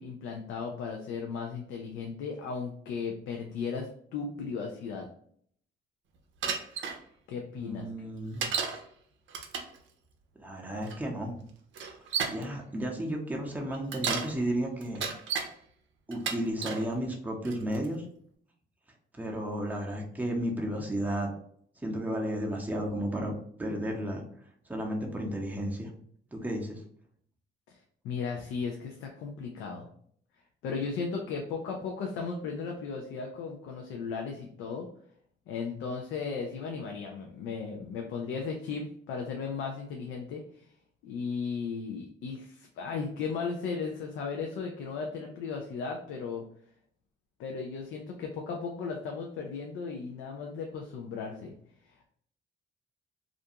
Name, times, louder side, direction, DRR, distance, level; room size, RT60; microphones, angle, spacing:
voice 1, 0.0-5.1 7.3-7.9 27.7-27.8 28.0-29.9 30.6-34.9 35.5-40.7 41.0-46.4 47.4-51.5, left 5 dB, 85° left, 2 dB, 0.4 m, -36 dB
Bicycle, 6.4-7.0 8.4-8.8 9.3-9.8 10.9-11.0 11.7-12.4 13.7-14.3 14.8-15.5 16.1-16.8 17.5-17.9, right 6 dB, 70° right, 0.5 m, -32 dB
voice 2, 7.5-8.5 10.4-11.3 12.3-15.0 16.1-18.0 19.1-21.3 21.8-23.3 23.6-24.2 24.7-25.9 26.3-26.8, right 1 dB, 10° right, -1 dB, 0.7 m, -33 dB
2.5 x 2.2 x 2.7 m, 0.63 s
cardioid pair, 90°, 20 cm